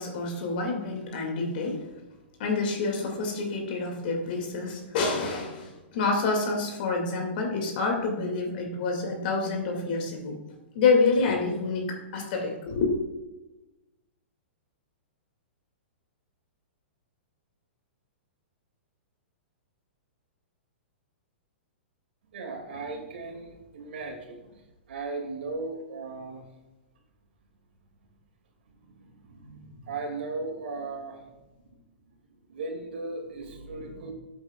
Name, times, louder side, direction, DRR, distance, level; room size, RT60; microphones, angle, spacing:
voice 1, 0.0-1.8 2.4-10.4 10.7-13.0, left 3 dB, 55° left, 1 dB, 2.4 m, -27 dB
voice 2, 22.3-24.6 24.9-26.4 28.9-31.3 31.6-31.8 32.5-34.1, right 3 dB, 70° right, 3 dB, 2.5 m, -37 dB
13.5 x 8.0 x 2.4 m, 1.1 s
hypercardioid pair, 130°, 6 cm